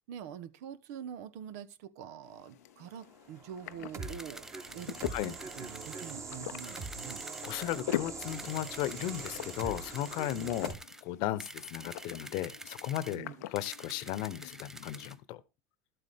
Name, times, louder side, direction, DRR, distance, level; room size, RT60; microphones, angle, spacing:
voice 1, 0.1-4.5 4.7-7.3 10.3-10.5 13.1-13.5, right 9 dB, 75° right, 0.9 m, -45 dB
sound 1, 2.2-15.1, left 14 dB, 85° left, 0.6 m, -44 dB
sound 2, 3.4-10.7, right 4 dB, 35° right, 2.4 m, -43 dB
sound 3, 4.0-6.1 6.6-7.8 8.2-11.0 11.4-13.2 13.6-15.2, right 1 dB, 5° right, 0.6 m, -48 dB
voice 2, 7.4-10.7 11.0-13.3 13.5-15.4, left 13 dB, 65° left, 0.9 m, -35 dB
12.0 x 8.0 x 3.6 m
hypercardioid pair, 85°, 8 cm